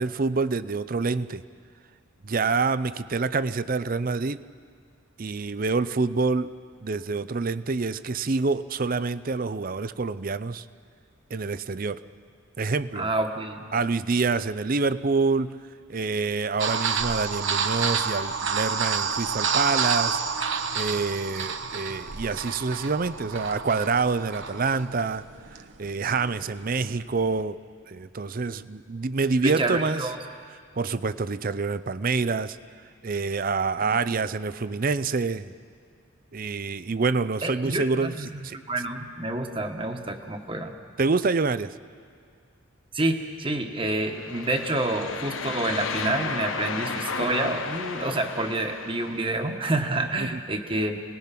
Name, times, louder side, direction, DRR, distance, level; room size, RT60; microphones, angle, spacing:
voice 1, 0.0-1.4 2.2-4.4 5.2-6.5 6.8-10.7 11.3-12.0 12.6-13.1 13.7-15.6 15.9-30.1 30.8-32.6 33.0-35.5 36.3-38.6 41.0-41.8 50.2-50.4, right 4 dB, 45° right, 14 dB, 0.5 m, -27 dB
voice 2, 12.9-13.7 29.4-30.2 33.8-33.9 37.4-38.4 38.7-40.7 42.9-51.0, right 2 dB, 25° right, 5 dB, 1.4 m, -28 dB
sound 1, 16.6-27.4, right 6 dB, 65° right, 1.1 m, -29 dB
sound 2, 44.0-49.4, left 4 dB, 75° left, 1.1 m, -33 dB
29.0 x 19.5 x 5.9 m, 2.1 s
head